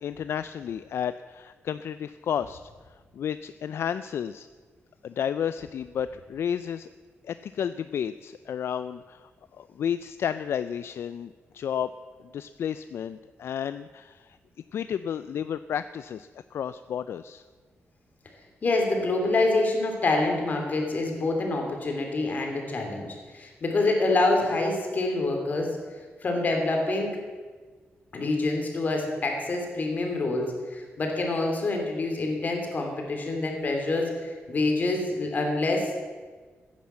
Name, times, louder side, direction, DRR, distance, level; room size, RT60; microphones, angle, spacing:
voice 1, 0.0-2.7 3.1-4.5 5.0-6.9 7.2-9.3 9.6-11.9 12.3-14.4 14.7-17.4, left 8 dB, 65° left, 13 dB, 0.4 m, -32 dB
voice 2, 18.6-25.8 26.2-27.1 28.1-35.9, left 2 dB, 40° left, 2 dB, 3.0 m, -26 dB
15.0 x 10.5 x 7.5 m, 1.5 s
wide cardioid pair, 170°, 5 cm